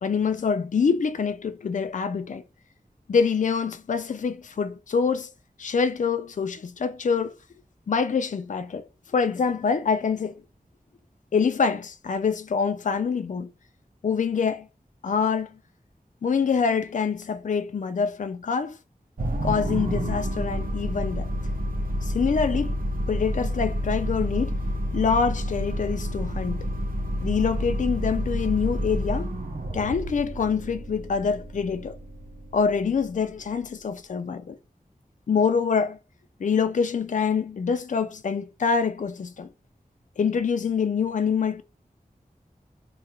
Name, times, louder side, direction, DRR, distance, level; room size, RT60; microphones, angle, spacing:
voice 1, 0.0-2.4 3.1-5.3 5.6-7.3 7.9-8.8 9.1-10.3 11.3-13.5 14.0-14.7 15.0-15.5 16.2-18.8 19.4-21.3 22.0-22.8 23.1-24.6 24.9-26.7 27.2-29.3 29.7-32.0 32.5-34.6 35.3-36.0 36.4-39.5 40.2-41.6, left 5 dB, 55° left, 0.4 m, -25 dB
sound 1, 19.2-33.7, equal, 70° right, 0.8 m, -29 dB
2.8 x 2.4 x 4.2 m
wide cardioid pair, 70°, 15 cm